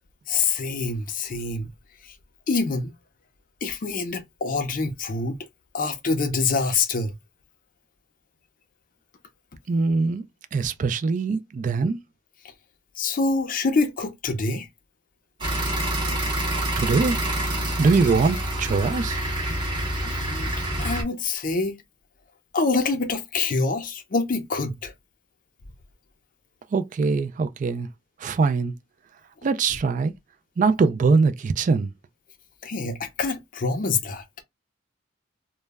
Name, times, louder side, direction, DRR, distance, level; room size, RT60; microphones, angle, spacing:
voice 1, 0.3-1.7 2.0-2.2 2.5-2.9 3.6-5.4 5.7-7.1 13.0-14.7 20.0-21.8 22.5-24.9 32.6-34.2, left 4 dB, 45° left, 0.4 m, -26 dB
voice 2, 9.7-10.2 10.5-12.0 16.8-17.2 17.8-19.2 26.7-27.9 28.2-28.7 29.4-30.1 30.6-31.9, right 4 dB, 45° right, 0.3 m, -22 dB
sound 1, 15.4-21.0, right 1 dB, 25° right, 0.8 m, -27 dB
2.1 x 2.0 x 3.3 m
head